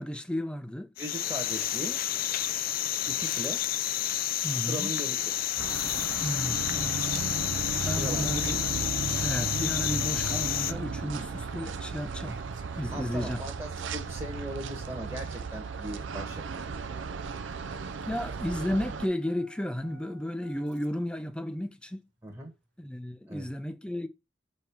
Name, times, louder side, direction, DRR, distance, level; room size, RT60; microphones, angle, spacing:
voice 1, 0.0-0.9 4.4-4.9 6.2-7.0 7.8-8.6 9.2-12.4 12.7-13.4 18.0-22.0 22.8-24.1, equal, 5° left, 0.6 m, -33 dB
sound 1, 1.0-10.7, left 11 dB, 50° left, 0.4 m, -30 dB
voice 2, 1.0-2.0 3.1-3.6 4.7-5.3 7.8-8.7 12.9-16.7 22.2-22.5 23.3-23.5, right 1 dB, 15° right, 1.2 m, -39 dB
Engine starting, 5.2-21.1 22.3-22.4, right 2 dB, 65° right, 1.4 m, -54 dB
sound 2, 5.6-19.1, right 4 dB, 85° right, 0.5 m, -35 dB
6.1 x 4.4 x 3.5 m
head